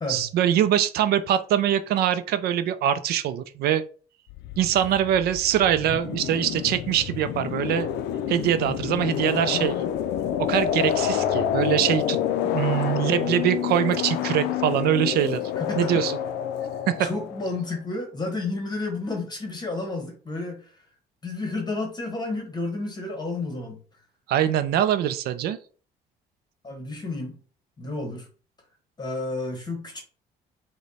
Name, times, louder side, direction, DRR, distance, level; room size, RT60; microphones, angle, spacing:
voice 1, 0.1-3.8 4.6-7.9 8.3-9.8 10.5-12.2 12.4-15.4 15.8-16.1 16.9-17.1 24.3-25.6, right 10 dB, 70° right, 12 dB, 0.4 m, -23 dB
sound 1, 4.3-17.7, left 10 dB, 80° left, 0.4 m, -28 dB
voice 2, 15.5-15.9 17.0-20.8 21.2-23.8 26.6-27.4 27.8-28.3 29.0-30.0, left 2 dB, 25° left, 4 dB, 1.1 m, -31 dB
5.0 x 2.2 x 4.1 m, 0.40 s
cardioid pair, 110°, 17 cm